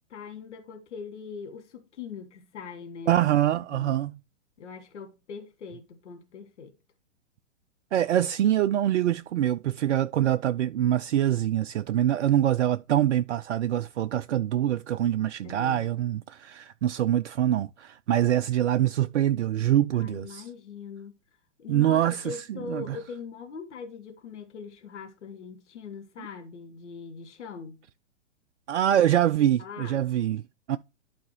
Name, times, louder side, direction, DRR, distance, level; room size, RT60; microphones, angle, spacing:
voice 1, 0.1-3.3 3.7-4.0 4.6-6.7 15.4-16.0 19.9-21.1 21.6-27.8 29.3-30.0, left 5 dB, 65° left, 1.5 m, -41 dB
voice 2, 3.1-4.2 7.9-20.5 21.7-23.0 28.7-30.4 30.7-30.8, right 11 dB, 65° right, 0.5 m, -24 dB
11.5 x 4.1 x 3.1 m
figure-of-eight pair, 115°, 38 cm